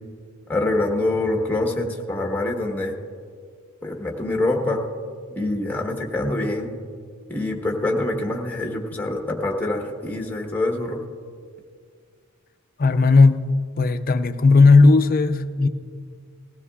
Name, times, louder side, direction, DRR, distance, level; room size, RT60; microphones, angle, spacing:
voice 1, 0.5-2.9 3.8-4.8 5.3-6.7 7.3-11.0, left 2 dB, 10° left, 1.2 m, -25 dB
voice 2, 12.8-15.7, left 3 dB, 40° left, 0.5 m, -16 dB
20.0 x 15.0 x 2.4 m
head